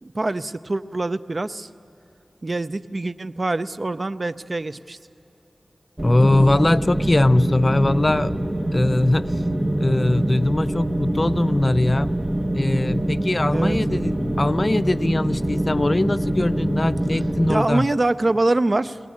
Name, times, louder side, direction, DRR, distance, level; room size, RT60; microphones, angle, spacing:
voice 1, 0.0-1.7 2.4-5.0 13.5-13.8 17.5-19.0, right 2 dB, 50° right, 13 dB, 0.5 m, -24 dB
voice 2, 6.0-8.3 8.7-9.3 9.8-12.1 12.5-17.9, left 2 dB, 45° left, 15 dB, 0.5 m, -21 dB
sound 1, 6.0-17.6, right 1 dB, 25° right, 1.1 m, -24 dB
23.0 x 18.0 x 8.5 m, 3.0 s
cardioid pair, 40°, 0 cm